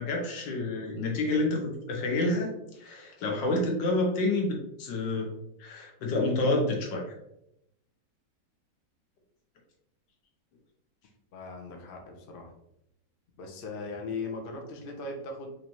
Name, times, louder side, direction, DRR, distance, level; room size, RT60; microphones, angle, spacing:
voice 1, 0.0-5.3 5.6-7.1, left 2 dB, 80° left, 1 dB, 1.6 m, -29 dB
voice 2, 11.3-12.5 13.4-15.5, left 3 dB, 65° left, 2 dB, 0.5 m, -38 dB
4.9 x 2.7 x 3.0 m, 0.81 s
omnidirectional pair, 1.9 m